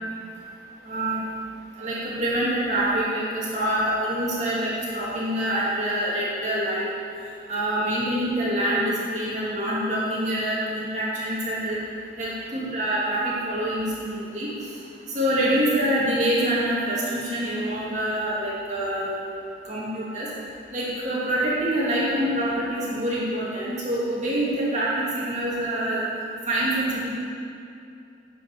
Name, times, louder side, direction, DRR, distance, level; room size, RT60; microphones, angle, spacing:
voice 1, 0.8-1.2 1.8-6.9 7.5-11.8 12.2-14.5 15.1-19.1 19.6-20.3 20.7-26.0 26.5-27.1, right 1 dB, 40° right, -8 dB, 2.6 m, -26 dB
9.8 x 6.2 x 7.9 m, 2.6 s
head